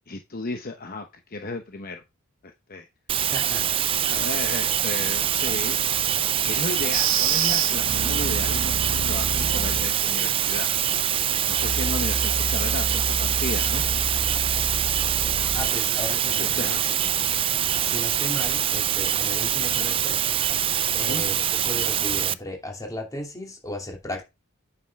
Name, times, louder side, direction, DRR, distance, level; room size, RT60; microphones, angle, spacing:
voice 1, 0.1-2.0 2.4-2.9 4.0-5.8 6.4-10.7 11.5-13.8 16.4-16.9 21.1-21.2, left 3 dB, 45° left, 0.9 m, -34 dB
sound 1, 3.1-22.3, right 10 dB, 25° right, 0.3 m, -24 dB
voice 2, 3.3-3.9 15.5-17.3 17.9-20.3 20.9-24.2, left 1 dB, 15° left, 2.7 m, -36 dB
sound 2, 6.9-10.0 11.4-15.7, right 4 dB, 70° right, 0.9 m, -29 dB
9.0 x 6.8 x 3.5 m
head